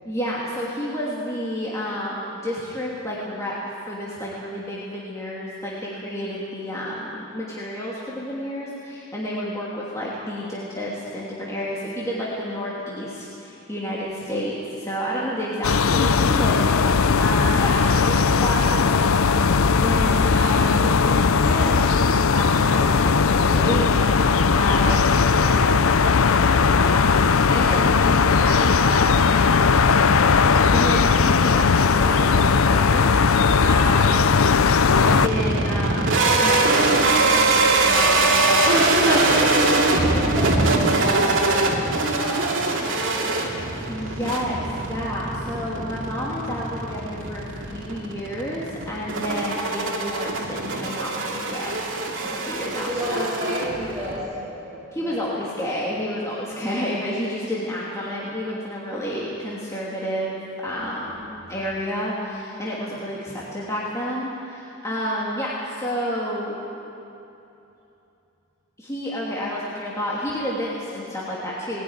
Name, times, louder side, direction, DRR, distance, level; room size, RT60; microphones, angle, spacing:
voice 1, 0.0-3.6 3.9-19.0 19.2-21.9 22.3-25.0 25.4-30.2 30.7-34.4 35.1-39.5 43.9-51.8 52.2-53.2 54.9-60.4 60.6-61.2 61.5-66.6 68.8-71.8, equal, 15° left, -7 dB, 2.8 m, -30 dB
sound 1, 15.6-35.3, left 5 dB, 70° left, 0.6 m, -18 dB
sound 2, 35.0-54.2, right 2 dB, 65° right, 2.7 m, -22 dB
voice 2, 39.1-43.5 52.7-55.4 60.7-61.0 61.3-61.7, right 1 dB, 15° right, -10 dB, 6.4 m, -32 dB
20.5 x 15.5 x 9.8 m, 2.8 s
head